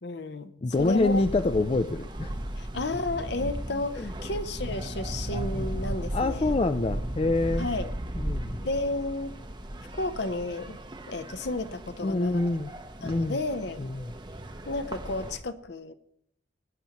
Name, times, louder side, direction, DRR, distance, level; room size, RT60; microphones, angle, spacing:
voice 1, 0.0-0.5 0.8-1.2 2.6-6.6 7.6-7.9 8.6-9.4 10.0-10.8 11.1-12.4 13.0-13.9 14.7-15.9, left 2 dB, 60° left, 11 dB, 0.7 m, -32 dB
voice 2, 0.6-2.4 4.0-4.1 6.1-7.7 8.2-8.6 12.0-12.7 13.0-13.4 13.8-14.1, left 2 dB, 30° left, 10 dB, 0.3 m, -26 dB
sound 1, 0.7-15.4, right 1 dB, 25° right, 0.7 m, -36 dB
19.5 x 9.9 x 3.0 m, 0.69 s
head